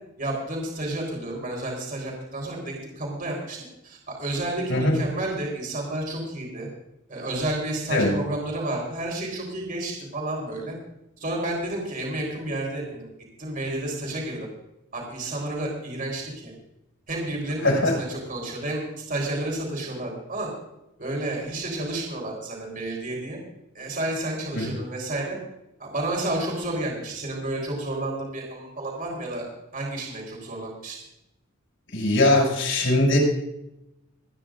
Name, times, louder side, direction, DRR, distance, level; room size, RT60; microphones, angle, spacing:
voice 1, 0.2-3.6 3.8-6.7 7.1-10.7 11.2-13.1 13.4-14.5 14.9-16.5 17.1-20.5 21.0-23.4 23.7-25.4 25.8-30.9, right 1 dB, 45° right, -1 dB, 4.3 m, -31 dB
voice 2, 31.9-33.2, left 1 dB, 70° left, -1 dB, 6.6 m, -20 dB
29.5 x 10.0 x 2.6 m, 0.88 s
head